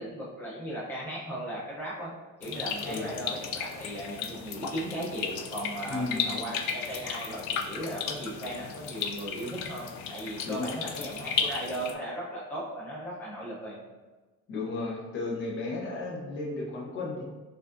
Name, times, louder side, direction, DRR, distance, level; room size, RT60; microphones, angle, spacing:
voice 1, 0.0-2.1 2.4-13.8, right 1 dB, 5° left, -7 dB, 0.6 m, -37 dB
sound 1, 2.4-11.9, left 7 dB, 70° left, 0.5 m, -35 dB
voice 2, 5.8-6.2 10.4-10.7 14.5-17.2, left 3 dB, 40° left, -2 dB, 0.7 m, -34 dB
4.7 x 2.5 x 2.5 m, 1.3 s
cardioid pair, 175°, 31 cm